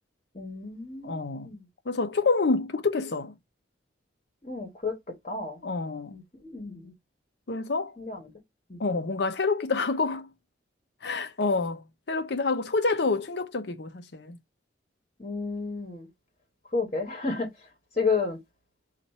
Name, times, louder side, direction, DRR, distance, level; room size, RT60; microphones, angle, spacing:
voice 1, 0.3-1.7 4.4-4.9 5.2-5.6 6.1-6.9 8.0-8.3 8.7-8.8 15.2-16.1 16.7-17.7 17.9-18.4, left 4 dB, 35° left, 1.2 m, -31 dB
voice 2, 1.0-1.5 1.9-3.3 5.6-6.1 7.5-7.9 8.8-10.3 11.0-14.4, left 3 dB, 60° left, 0.6 m, -27 dB
4.1 x 2.5 x 4.2 m
head